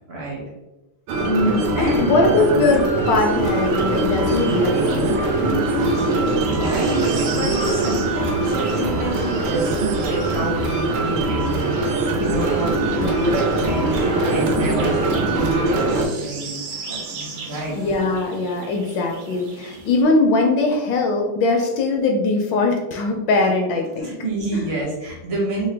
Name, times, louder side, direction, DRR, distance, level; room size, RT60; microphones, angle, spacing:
voice 1, 0.1-0.4 1.4-2.5 5.4-17.8 24.0-25.7, right 1 dB, 50° right, -3 dB, 0.7 m, -28 dB
sound 1, 1.1-16.1, right 2 dB, 85° right, 1.5 m, -21 dB
voice 2, 1.2-5.2 12.8-13.4 17.5-24.1 24.5-24.7, left 3 dB, 75° left, 2 dB, 1.1 m, -21 dB
sound 2, 3.4-20.0, right 4 dB, 65° right, 1.1 m, -38 dB
3.8 x 2.1 x 3.2 m, 1.0 s
omnidirectional pair, 2.3 m